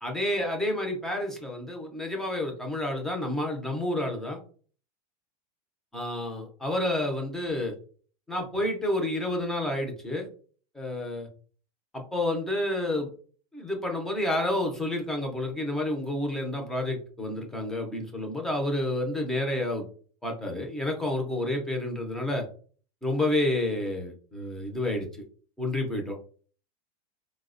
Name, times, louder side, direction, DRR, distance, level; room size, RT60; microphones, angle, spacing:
voice 1, 0.0-4.4 5.9-7.7 8.3-10.3 10.7-11.3 11.9-13.1 13.5-19.8 20.2-22.5 23.0-25.2 25.6-26.2, left 1 dB, ahead, 1 dB, 0.3 m, -29 dB
4.3 x 2.0 x 2.4 m, 0.42 s
supercardioid pair, 175°, 19 cm